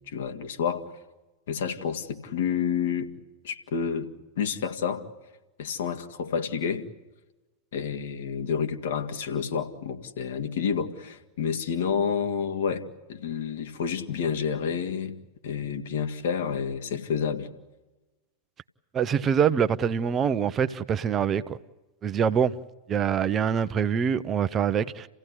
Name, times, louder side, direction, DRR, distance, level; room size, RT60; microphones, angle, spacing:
voice 1, 0.1-0.9 1.5-3.1 3.4-4.1 4.4-5.1 5.6-6.9 7.7-15.1 15.4-17.5, left 7 dB, 60° left, 2.2 m, -29 dB
voice 2, 18.9-21.6 22.0-22.5 22.9-25.1, right 7 dB, 25° right, 0.9 m, -24 dB
29.0 x 16.5 x 9.9 m
figure-of-eight pair, 90°, 0 cm